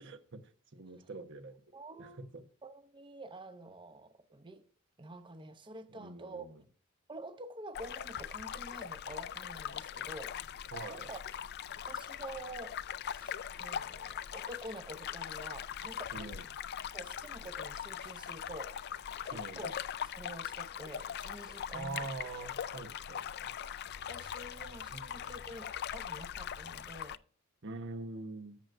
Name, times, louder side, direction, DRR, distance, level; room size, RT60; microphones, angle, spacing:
voice 1, 0.0-2.4 5.9-6.6 10.7-11.1 16.1-16.5 19.3-19.7 21.7-23.5 24.9-25.0 27.6-28.6, right 3 dB, 60° right, 1.2 m, -44 dB
voice 2, 1.7-2.2 2.6-4.6 5.0-6.6 7.1-10.4 10.9-11.2 11.8-12.8 13.0-16.3 16.9-18.8 19.2-19.8 20.0-22.1 24.1-27.2, right 2 dB, 25° right, 0.8 m, -48 dB
sound 1, 7.7-27.2, left 9 dB, 50° left, 0.4 m, -41 dB
13.5 x 7.8 x 2.6 m
head